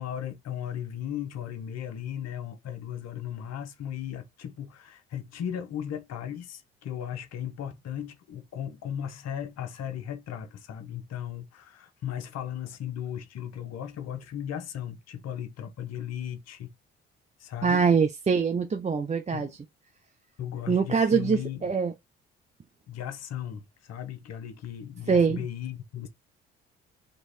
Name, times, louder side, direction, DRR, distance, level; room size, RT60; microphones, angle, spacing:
voice 1, 0.0-16.7 17.4-17.8 19.3-19.5 20.4-21.7 22.9-26.1, left 10 dB, 60° left, 1.0 m, -36 dB
voice 2, 17.6-19.5 20.7-21.9 25.1-25.5, right 5 dB, 25° right, 0.6 m, -24 dB
3.2 x 3.0 x 4.3 m
hypercardioid pair, 50°, 30 cm